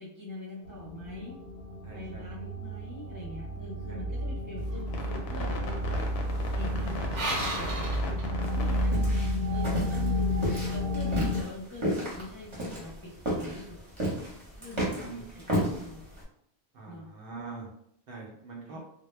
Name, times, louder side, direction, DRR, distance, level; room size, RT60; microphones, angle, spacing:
voice 1, 0.0-1.4 1.9-6.1 6.5-9.0 9.5-13.8 14.6-16.1 16.9-17.1 18.6-18.8, left 2 dB, 25° left, -8 dB, 0.4 m, -44 dB
sound 1, 0.6-11.4, left 1 dB, 65° left, 0.7 m, -31 dB
voice 2, 1.8-2.3 3.9-4.0 6.6-6.8 8.4-8.5 9.7-9.8 15.0-15.2 16.7-17.7 18.1-18.8, right 4 dB, 60° right, -2 dB, 0.7 m, -43 dB
sound 2, 4.6-8.9, right 2 dB, 85° right, 0.9 m, -38 dB
sound 3, 8.4-16.2, equal, 30° right, 0.8 m, -33 dB
2.1 x 2.1 x 3.1 m, 0.72 s
omnidirectional pair, 1.2 m